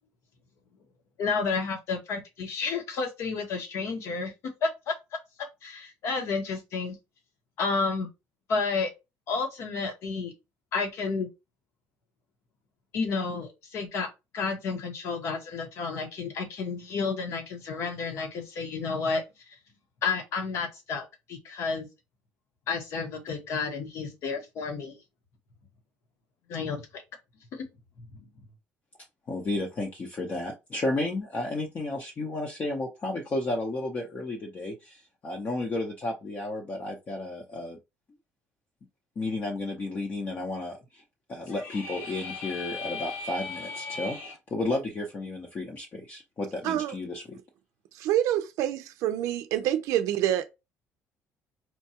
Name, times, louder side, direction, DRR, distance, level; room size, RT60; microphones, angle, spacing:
voice 1, 1.2-4.3 4.6-4.9 5.6-7.0 7.6-8.1 8.5-8.9 9.3-10.3 10.7-11.3 12.9-14.1 14.3-19.2 20.0-21.9 22.7-24.9 26.5-27.0 27.5-27.6 28.2-28.3, left 4 dB, 60° left, 1.1 m, -31 dB
voice 2, 29.3-37.8 39.2-41.0 41.3-47.4, left 2 dB, 35° left, 0.7 m, -32 dB
sound 1, 41.4-44.3, left 3 dB, 80° left, 1.5 m, -38 dB
voice 3, 46.6-47.0 47.9-50.5, right 12 dB, 75° right, 0.4 m, -27 dB
4.4 x 2.3 x 2.8 m
cardioid pair, 125°, 5 cm